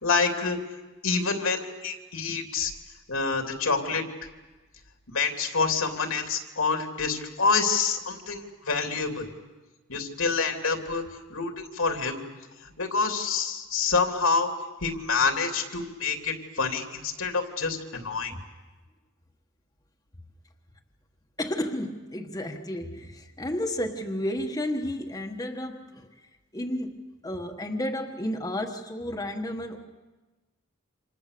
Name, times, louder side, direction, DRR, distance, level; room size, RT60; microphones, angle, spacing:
voice 1, 0.0-0.6 1.0-2.7 3.1-4.0 5.1-9.3 9.9-11.0 11.3-12.2 12.8-14.5 14.8-18.3, left 4 dB, 85° left, 3 dB, 3.1 m, -27 dB
voice 2, 21.4-26.1 26.5-29.8, left 1 dB, 15° left, 2 dB, 1.3 m, -32 dB
28.5 x 26.5 x 6.8 m, 1.2 s
head